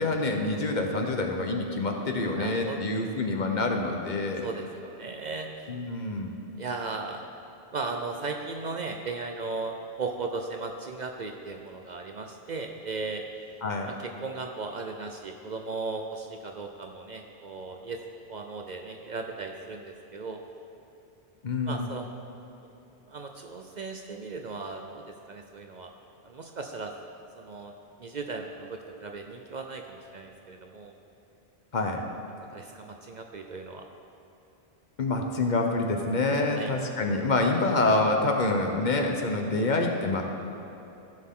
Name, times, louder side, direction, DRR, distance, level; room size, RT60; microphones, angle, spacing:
voice 1, 0.0-4.5 5.7-6.3 13.6-13.9 21.4-21.8 31.7-32.0 35.0-40.2, left 2 dB, 50° left, 3 dB, 0.9 m, -26 dB
voice 2, 2.3-2.8 4.4-5.7 6.6-7.2 7.7-13.2 13.9-18.0 18.3-20.4 21.7-22.1 23.1-25.9 26.2-26.9 27.4-27.7 28.0-31.0 32.5-33.9 36.5-36.7, right 3 dB, 50° right, 3 dB, 0.6 m, -37 dB
15.0 x 6.5 x 3.7 m, 2.9 s
omnidirectional pair, 1.1 m